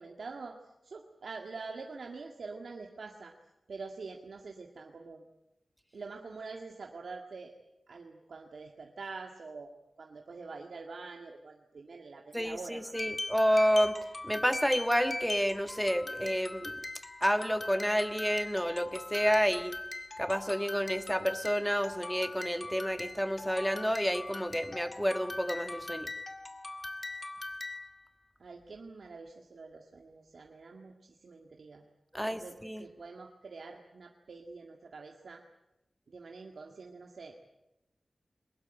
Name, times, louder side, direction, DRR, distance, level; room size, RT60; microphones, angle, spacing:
voice 1, 0.0-3.3 3.7-5.2 5.9-7.5 7.9-13.2 28.4-31.8 32.2-35.4 36.1-37.4, right 4 dB, 75° right, 2 dB, 1.9 m, -46 dB
voice 2, 12.3-14.0 14.2-16.8 17.2-19.8 20.2-26.1 32.1-32.9, equal, ahead, 9 dB, 1.4 m, -30 dB
sound 1, 12.9-28.0, left 2 dB, 30° left, 2.0 m, -41 dB
22.5 x 20.5 x 8.9 m, 0.90 s
wide cardioid pair, 115°, 0 cm